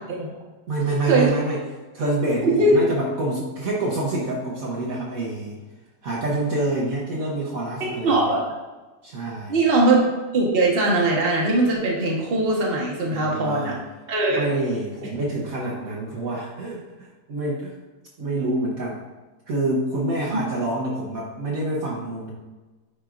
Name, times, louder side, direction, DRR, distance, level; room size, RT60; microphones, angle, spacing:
voice 1, 0.7-1.6 1.9-5.6 6.0-8.2 9.0-9.5 13.0-13.7 14.3-17.7 18.2-19.0 19.5-22.3, right 2 dB, 60° right, -5 dB, 1.4 m, -27 dB
voice 2, 2.4-2.9 7.8-8.4 9.5-13.7 14.1-14.4 20.3-20.4, right 2 dB, 35° right, -2 dB, 1.4 m, -20 dB
9.6 x 4.4 x 2.5 m, 1.2 s
omnidirectional pair, 1.8 m